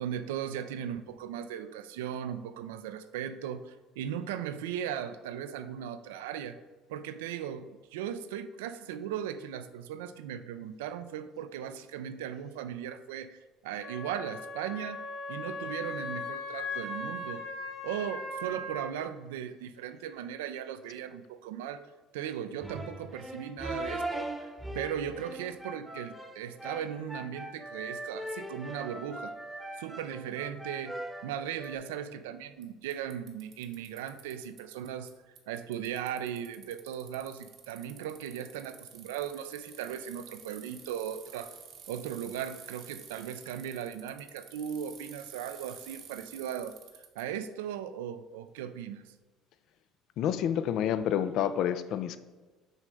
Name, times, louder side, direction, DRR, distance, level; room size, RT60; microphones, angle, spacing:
voice 1, 0.0-6.6 6.9-15.0 15.3-17.4 17.8-21.9 22.1-29.3 29.8-35.1 35.5-41.6 41.9-46.8 47.2-49.1, right 9 dB, 85° right, 10 dB, 0.4 m, -37 dB
Wind instrument woodwind instrument, 13.8-18.9, left 2 dB, 85° left, 1.8 m, -38 dB
sound 1, 22.6-31.8, right 1 dB, 5° right, 0.9 m, -40 dB
Bicycle, 31.6-31.7 32.6-32.7 32.9-35.1 35.4-47.2, right 7 dB, 65° right, 0.9 m, -50 dB
voice 2, 50.2-52.2, left 9 dB, 65° left, 12 dB, 0.4 m, -28 dB
6.2 x 3.2 x 5.2 m, 1.3 s
hypercardioid pair, 70°, 0 cm